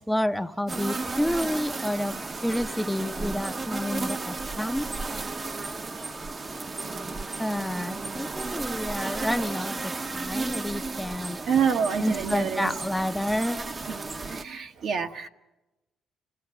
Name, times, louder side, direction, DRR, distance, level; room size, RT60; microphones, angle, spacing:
voice 1, 0.0-2.1 2.4-4.9 7.4-11.4 12.0-13.7, equal, 5° left, 8 dB, 0.7 m, -29 dB
sound 1, 0.7-14.4, right 3 dB, 30° right, 0.8 m, -34 dB
voice 2, 11.4-12.8 14.3-15.3, right 7 dB, 65° right, 5 dB, 1.1 m, -28 dB
26.5 x 16.5 x 7.8 m, 1.1 s
cardioid pair, 90°, 0 cm